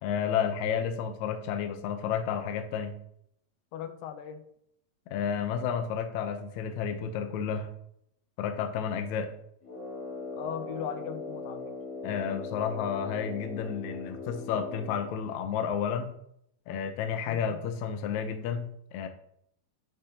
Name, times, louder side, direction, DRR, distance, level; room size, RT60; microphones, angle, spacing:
voice 1, 0.0-3.0 5.1-7.7 8.4-9.3 12.0-16.1 16.7-19.1, left 7 dB, 70° left, 6 dB, 1.9 m, -31 dB
voice 2, 3.7-4.4 10.4-11.7 17.3-17.6, left 9 dB, 90° left, 9 dB, 2.5 m, -38 dB
Brass instrument, 9.6-15.2, left 2 dB, 45° left, 3.0 m, -40 dB
11.0 x 8.0 x 2.9 m, 0.74 s
omnidirectional pair, 3.9 m